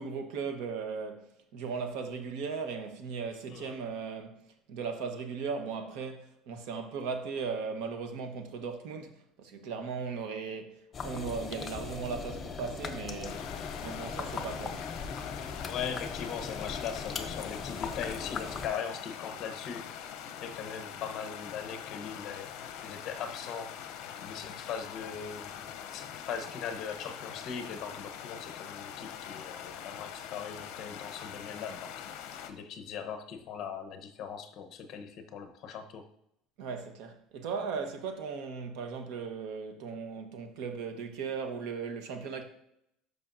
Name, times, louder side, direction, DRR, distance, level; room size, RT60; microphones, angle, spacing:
voice 1, 0.0-10.7 11.0-14.9 36.6-42.5, right 5 dB, 65° right, 1.0 m, -37 dB
sound 1, 10.9-18.7, left 5 dB, 20° left, 0.6 m, -39 dB
sound 2, 13.2-32.5, left 9 dB, 60° left, 0.7 m, -43 dB
voice 2, 15.7-20.1 20.4-23.7 24.2-32.1 32.5-36.0, left 7 dB, 40° left, 0.9 m, -40 dB
11.5 x 5.4 x 2.6 m
cardioid pair, 165°, 0 cm